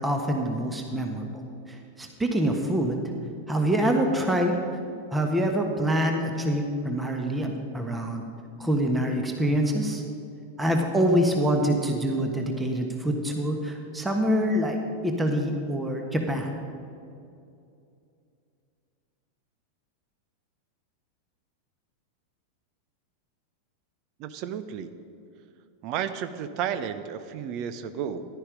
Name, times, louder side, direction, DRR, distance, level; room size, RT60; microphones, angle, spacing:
voice 1, 0.0-1.3 2.0-3.0 3.5-4.6 5.1-8.2 8.6-10.0 10.6-14.8 15.0-16.5, equal, 10° right, 3 dB, 1.3 m, -25 dB
voice 2, 24.2-25.0 25.8-28.3, right 8 dB, 40° right, 11 dB, 0.8 m, -32 dB
14.5 x 11.5 x 5.1 m, 2.5 s
figure-of-eight pair, 90°, 0 cm